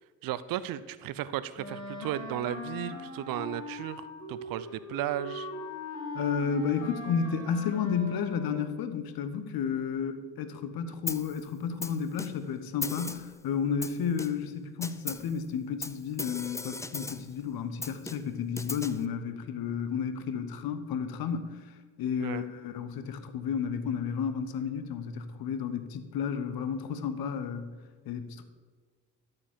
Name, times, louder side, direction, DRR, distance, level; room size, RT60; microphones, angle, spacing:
voice 1, 0.2-5.5 22.2-22.5, right 12 dB, 50° right, 16 dB, 0.6 m, -35 dB
Wind instrument woodwind instrument, 1.6-8.7, left 2 dB, 40° left, 2.8 m, -40 dB
voice 2, 6.1-21.7 22.0-27.7 28.0-28.4, left 7 dB, 55° left, 10 dB, 1.1 m, -32 dB
Snare drum, 11.1-11.4 11.8-12.5 12.8-13.4 13.8-14.5 14.8-15.3 15.8-17.3 17.8-19.1, left 3 dB, 5° left, 0.4 m, -38 dB
12.5 x 4.9 x 7.4 m, 1.5 s
figure-of-eight pair, 40°, 43 cm